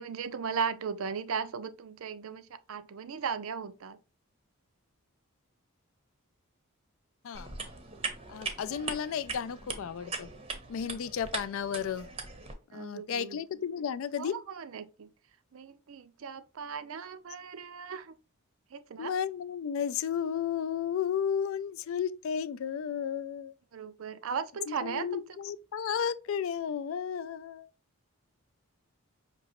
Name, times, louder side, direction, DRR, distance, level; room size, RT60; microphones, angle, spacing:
voice 1, 0.0-4.0 10.8-11.0 12.7-13.4 14.2-15.1 15.5-18.2 18.7-19.1 23.7-25.2, right 6 dB, 70° right, 0.4 m, -37 dB
sound 1, 7.3-12.5, right 4 dB, 25° right, 0.6 m, -40 dB
voice 2, 8.3-10.3 10.7-12.1 12.7-14.4 19.0-23.5 24.7-27.7, left 8 dB, 65° left, 0.3 m, -33 dB
5.2 x 2.8 x 2.9 m
head